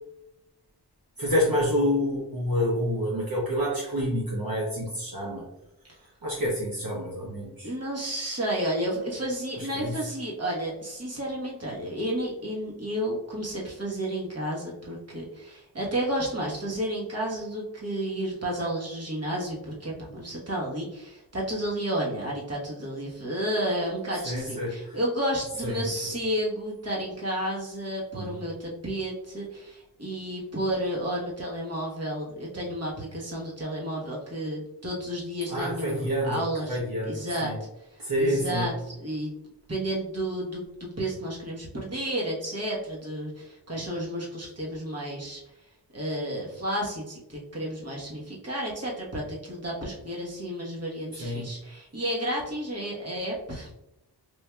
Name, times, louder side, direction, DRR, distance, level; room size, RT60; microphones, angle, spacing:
voice 1, 1.2-5.4 6.2-7.7 9.7-9.9 24.2-24.7 25.6-25.8 28.1-28.4 35.5-36.4 36.7-37.6 38.0-38.7 51.1-51.5, equal, 55° right, -4 dB, 0.9 m, -28 dB
voice 2, 7.6-36.8 37.0-37.5 37.9-39.3 39.7-45.4 45.9-53.7, right 1 dB, 35° right, -3 dB, 1.1 m, -31 dB
4.6 x 2.6 x 2.2 m, 0.88 s
wide cardioid pair, 95°, 41 cm